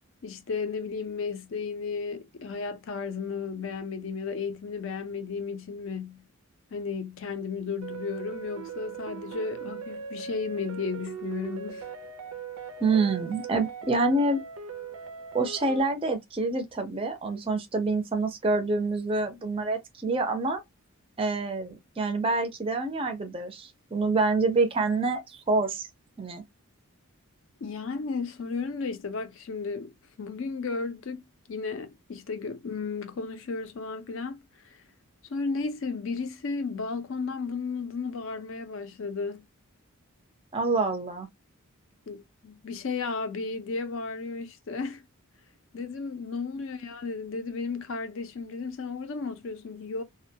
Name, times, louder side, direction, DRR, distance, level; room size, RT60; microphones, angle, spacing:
voice 1, 0.2-6.2 6.7-11.9 27.6-31.2 31.5-34.4 34.6-34.8 35.3-39.4 42.1-45.0 45.7-50.0, left 4 dB, 60° left, 0.4 m, -34 dB
sound 1, 7.8-15.8, right 7 dB, 80° right, 0.5 m, -39 dB
voice 2, 12.8-14.4 15.3-20.6 21.2-25.9 26.2-26.4 40.5-41.3, right 3 dB, 25° right, 0.4 m, -27 dB
2.2 x 2.1 x 2.6 m
head